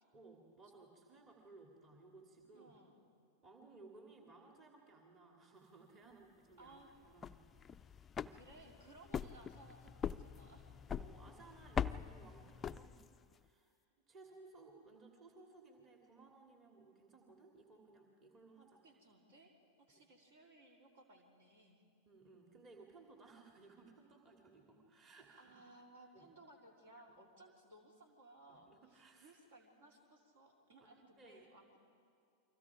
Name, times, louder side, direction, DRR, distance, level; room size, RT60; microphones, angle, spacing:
voice 1, 0.1-2.7 3.4-7.4 8.1-8.4 10.9-13.7 14.1-18.8 19.9-20.0 22.1-25.5 26.1-26.3 27.1-27.2 28.5-29.3 31.2-31.5, right 3 dB, 25° right, 0 dB, 2.7 m, -60 dB
voice 2, 2.5-3.0 6.6-6.9 8.3-10.7 18.8-19.5 19.9-21.8 25.4-31.8, right 2 dB, 60° right, 0 dB, 4.2 m, -61 dB
sound 1, 7.0-13.3, left 7 dB, 20° left, 0.5 m, -43 dB
29.0 x 24.5 x 4.9 m, 2.4 s
figure-of-eight pair, 90°, 0 cm